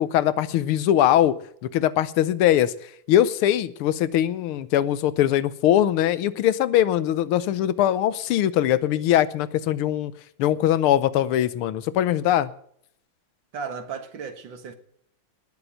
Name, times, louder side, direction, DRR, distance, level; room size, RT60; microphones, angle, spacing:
voice 1, 0.0-1.3 1.6-2.7 3.1-10.1 10.4-12.5, left 11 dB, 85° left, 1.7 m, -21 dB
voice 2, 13.5-14.7, right 5 dB, 60° right, 2.1 m, -35 dB
19.0 x 7.1 x 7.8 m
omnidirectional pair, 2.3 m